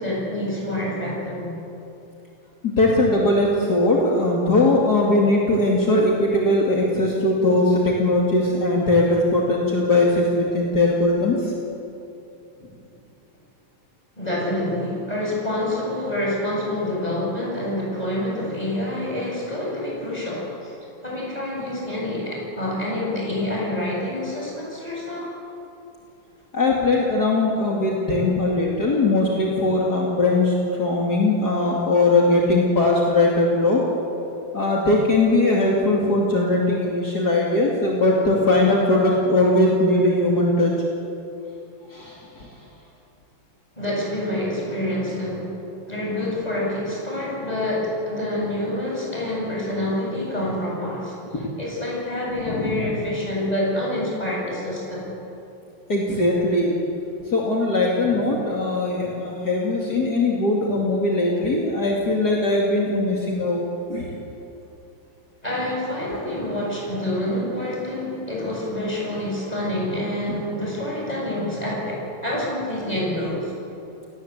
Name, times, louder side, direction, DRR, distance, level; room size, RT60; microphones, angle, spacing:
voice 1, 0.0-1.6 14.2-20.8 21.0-25.3 43.8-45.5 45.9-55.1 65.4-73.5, left 1 dB, 15° left, -4 dB, 8.1 m, -27 dB
voice 2, 2.6-11.5 26.5-33.8 34.5-40.7 41.9-42.5 51.3-51.5 52.3-52.9 55.9-56.8 57.2-63.6 63.9-64.1, left 2 dB, 50° left, -3 dB, 3.1 m, -20 dB
29.5 x 19.0 x 8.2 m, 2.9 s
omnidirectional pair, 2.3 m